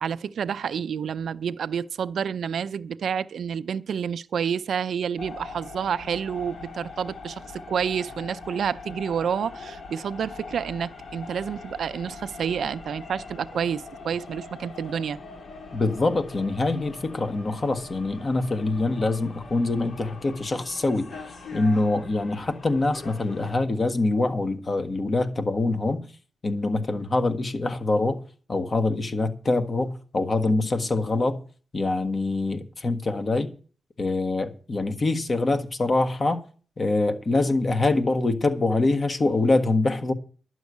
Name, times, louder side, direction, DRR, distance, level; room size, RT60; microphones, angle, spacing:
voice 1, 0.0-15.2, right 7 dB, 70° right, 0.5 m, -29 dB
sound 1, 5.2-23.5, left 4 dB, 65° left, 3.5 m, -42 dB
voice 2, 15.7-21.1 21.5-26.0 26.4-28.2 28.5-31.4 31.7-33.5 34.0-36.4 36.8-40.1, left 2 dB, 35° left, 1.5 m, -24 dB
11.5 x 6.3 x 8.3 m
wide cardioid pair, 120°, 0 cm